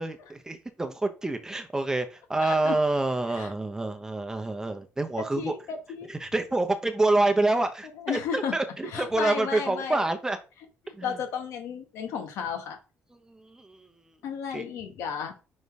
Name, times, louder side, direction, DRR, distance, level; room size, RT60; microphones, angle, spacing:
voice 1, 0.0-5.5 6.2-10.4 11.0-11.1 13.5-13.8 14.5-14.7, right 2 dB, 10° right, 7 dB, 0.9 m, -27 dB
voice 2, 2.4-2.8 3.3-3.5 5.2-6.1 7.9-8.6 8.8-10.0 10.8-12.8 14.2-15.3, left 7 dB, 85° left, 4 dB, 1.5 m, -33 dB
5.4 x 3.8 x 4.8 m, 0.32 s
cardioid pair, 115°, 5 cm